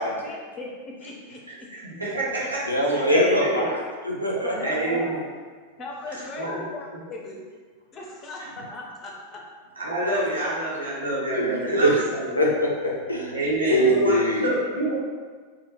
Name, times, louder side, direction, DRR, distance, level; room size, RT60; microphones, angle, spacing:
voice 1, 0.2-1.4 4.4-5.2 5.8-7.4 7.9-9.4, left 2 dB, 25° left, -1 dB, 0.5 m, -37 dB
voice 2, 1.5-2.6 2.9-3.7 4.6-5.2 6.4-6.6 9.8-12.3 13.3-14.9, right 1 dB, 80° right, -8 dB, 0.7 m, -27 dB
voice 3, 2.3-4.5 11.4-11.9 12.4-13.3 13.7-14.5, equal, 85° left, -2 dB, 0.4 m, -23 dB
2.1 x 2.1 x 2.9 m, 1.5 s
figure-of-eight pair, 90°, 0 cm